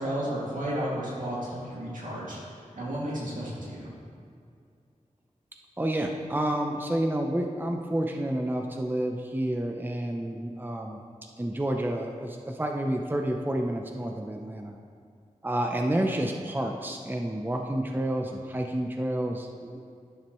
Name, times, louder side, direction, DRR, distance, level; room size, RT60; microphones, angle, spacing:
voice 1, 0.0-2.4 2.7-3.9, equal, 90° right, -7 dB, 2.4 m, -32 dB
voice 2, 5.8-11.0 11.4-14.8 15.4-19.8, right 1 dB, 15° right, 2 dB, 0.7 m, -29 dB
11.5 x 10.5 x 3.1 m, 2.4 s
wide cardioid pair, 75°, 13 cm